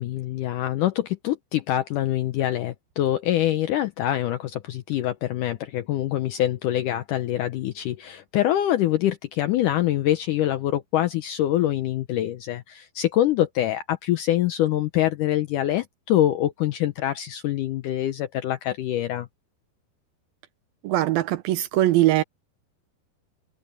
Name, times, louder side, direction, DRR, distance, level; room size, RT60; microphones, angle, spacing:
voice 1, 0.0-19.3, left 13 dB, 85° left, 1.8 m, -25 dB
voice 2, 20.8-22.2, right 15 dB, 75° right, 2.3 m, -21 dB
omnidirectional pair, 4.8 m